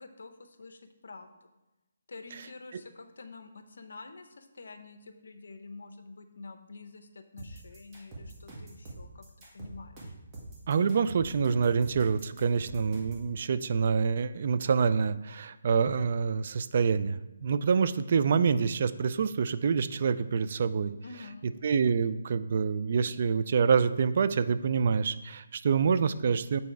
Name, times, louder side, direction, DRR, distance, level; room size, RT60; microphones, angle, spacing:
voice 1, 0.0-1.5 2.1-9.2 9.5-10.1 21.0-21.5, left 3 dB, 75° left, 9 dB, 0.8 m, -48 dB
sound 1, 7.4-13.3, right 2 dB, 20° right, 1.6 m, -45 dB
voice 2, 10.7-20.9 21.6-26.6, right 6 dB, 45° right, 14 dB, 0.3 m, -26 dB
7.0 x 4.1 x 4.6 m, 1.0 s
hypercardioid pair, 165°, 0 cm